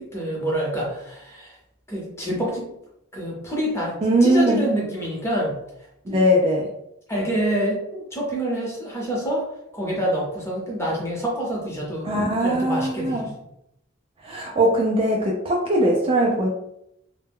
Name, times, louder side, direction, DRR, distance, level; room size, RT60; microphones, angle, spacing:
voice 1, 0.0-1.6 1.9-2.7 3.1-3.9 4.2-5.5 6.1-6.2 7.1-9.4 9.7-12.1 12.4-13.3, equal, 15° left, -4 dB, 0.8 m, -26 dB
voice 2, 4.0-4.6 6.1-6.7 12.0-13.3 14.2-16.5, right 1 dB, 25° right, -2 dB, 0.3 m, -20 dB
2.2 x 2.1 x 3.4 m, 0.78 s
head